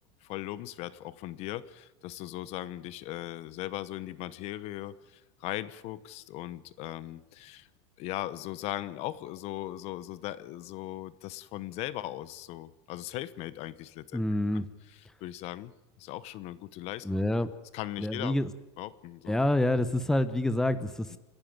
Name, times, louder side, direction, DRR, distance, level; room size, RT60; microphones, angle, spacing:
voice 1, 0.2-7.7 8.0-14.2 14.5-14.6 15.2-15.7 16.0-17.1 17.7-18.3 18.8-19.4 21.1-21.2, left 15 dB, 50° left, 16 dB, 1.0 m, -38 dB
voice 2, 14.1-14.6 17.0-17.5 18.0-18.5 19.3-21.2, left 1 dB, 5° left, 12 dB, 0.9 m, -27 dB
29.5 x 10.5 x 8.9 m, 1.0 s
supercardioid pair, 145°, 14 cm